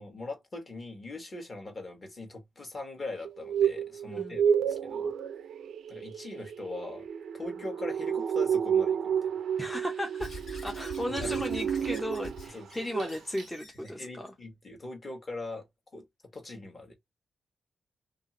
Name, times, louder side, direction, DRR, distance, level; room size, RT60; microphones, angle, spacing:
voice 1, 0.0-5.1 5.9-7.0 7.3-9.3 11.2-11.4 12.5-12.7 13.8-15.6 15.9-16.0 16.3-16.9, left 2 dB, 30° left, 1.1 m, -41 dB
sound 1, 3.2-12.5 12.8-13.1 13.4-13.5, right 8 dB, 85° right, 0.4 m, -30 dB
voice 2, 4.1-4.4 9.6-14.3, left 1 dB, 10° left, 0.5 m, -36 dB
Squeak / Writing, 10.2-14.0, left 1 dB, 70° left, 1.8 m, -45 dB
2.7 x 2.4 x 2.8 m
wide cardioid pair, 140°, 0 cm